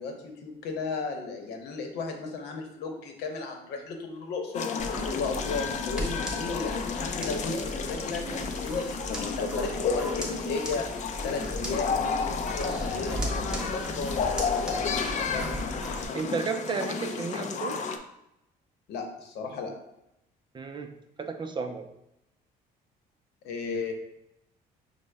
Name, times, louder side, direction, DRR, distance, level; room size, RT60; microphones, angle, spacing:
voice 1, 0.0-4.7 5.1-10.9 11.2-15.5 18.9-19.7 23.4-23.9, left 4 dB, 80° left, 4 dB, 0.9 m, -35 dB
sound 1, 4.5-18.0, left 5 dB, 45° left, 0.4 m, -32 dB
sound 2, 4.8-16.0, equal, 5° right, 0.9 m, -36 dB
voice 2, 16.1-17.8 20.5-21.9, right 4 dB, 30° right, 6 dB, 0.4 m, -33 dB
6.2 x 2.1 x 3.3 m, 0.84 s
cardioid pair, 110°, 17 cm